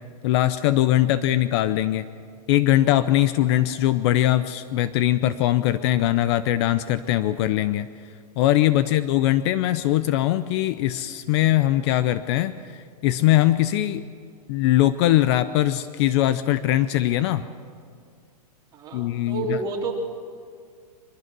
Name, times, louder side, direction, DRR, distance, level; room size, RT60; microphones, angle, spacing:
voice 1, 0.2-2.0 2.5-7.9 8.4-14.0 14.5-17.5 18.9-19.6, left 14 dB, 45° left, 14 dB, 0.6 m, -21 dB
voice 2, 18.7-19.9, right 3 dB, 20° right, -2 dB, 3.6 m, -30 dB
23.0 x 20.0 x 6.1 m, 2.2 s
hypercardioid pair, 140°, 20 cm